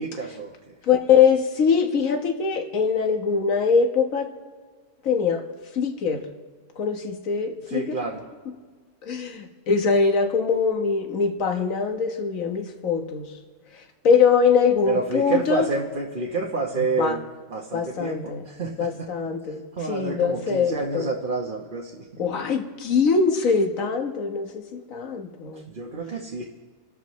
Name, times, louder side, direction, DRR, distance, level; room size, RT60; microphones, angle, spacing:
voice 1, 0.0-0.7 7.7-8.2 14.9-17.2 17.5-19.1 19.7-22.1 25.5-26.4, right 3 dB, 35° right, -2 dB, 1.1 m, -29 dB
voice 2, 0.9-4.3 5.0-5.4 5.7-6.2 6.8-7.8 9.1-13.3 14.0-15.6 16.8-17.1 17.7-18.5 18.8-19.6 19.9-21.1 22.2-25.7, left 6 dB, 55° left, 4 dB, 1.6 m, -22 dB
28.5 x 12.5 x 3.1 m, 1.5 s
omnidirectional pair, 1.8 m